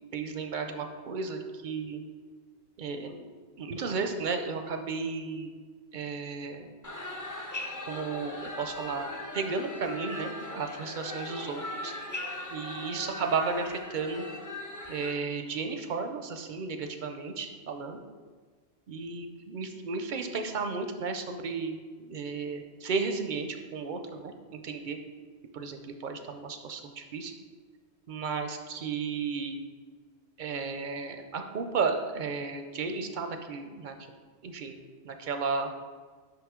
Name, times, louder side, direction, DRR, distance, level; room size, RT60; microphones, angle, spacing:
voice 1, 0.1-2.0 2.8-3.3 3.6-5.5 5.9-6.7 7.9-9.1 9.3-11.9 12.5-14.3 14.9-18.0 18.9-25.0 25.5-27.3 28.1-29.6 30.4-33.9 34.4-34.8 35.0-35.7, right 4 dB, 60° right, 6 dB, 0.6 m, -34 dB
sound 1, 6.8-15.1, left 2 dB, 25° left, 0.4 m, -39 dB
5.9 x 5.6 x 3.6 m, 1.5 s
omnidirectional pair, 1.1 m